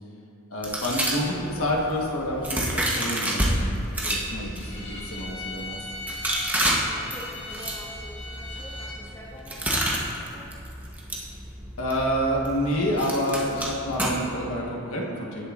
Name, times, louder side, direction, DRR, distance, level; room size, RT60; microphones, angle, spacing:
voice 1, 0.5-3.6 4.0-5.8 11.8-15.5, equal, 80° left, -2 dB, 1.4 m, -28 dB
sound 1, 0.6-3.5 3.9-14.5, right 1 dB, 10° right, 1.0 m, -30 dB
Bowed string instrument, 4.5-9.0, left 2 dB, 60° left, 1.7 m, -39 dB
voice 2, 6.7-10.6, equal, 10° left, -5 dB, 1.3 m, -46 dB
18.5 x 6.9 x 2.5 m, 2.6 s
head